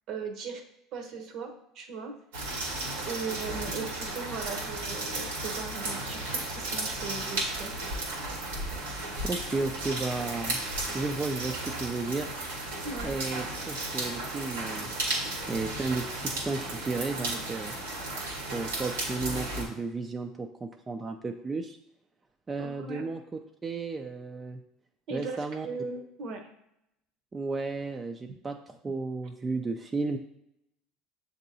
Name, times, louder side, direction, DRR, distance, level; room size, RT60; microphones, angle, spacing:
voice 1, 0.1-0.6 0.9-2.1 3.1-7.8 12.8-13.1 17.3-17.4 22.6-23.0 25.1-26.5, right 4 dB, 55° right, 5 dB, 0.8 m, -38 dB
sound 1, 2.3-19.7, right 2 dB, 90° right, 1.3 m, -34 dB
voice 2, 9.2-10.6 10.9-12.3 13.0-14.9 15.5-17.7 18.5-21.8 22.5-24.6 25.1-25.7 27.3-30.2, right 3 dB, 25° right, 4 dB, 0.4 m, -33 dB
7.3 x 2.7 x 2.7 m, 0.82 s
hypercardioid pair, 80°, 0 cm